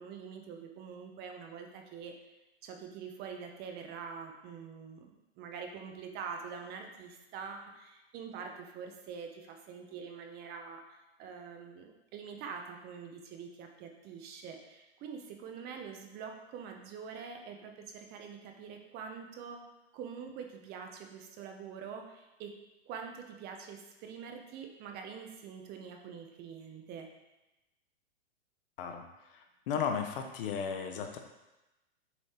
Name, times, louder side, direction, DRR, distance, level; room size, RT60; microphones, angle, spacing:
voice 1, 0.0-2.2 2.6-19.6 19.9-22.5 22.9-27.1, right 6 dB, 30° right, 4 dB, 0.7 m, -45 dB
voice 2, 29.3-31.2, left 7 dB, 55° left, 5 dB, 0.9 m, -35 dB
7.1 x 3.2 x 4.2 m, 0.99 s
hypercardioid pair, 125°, 32 cm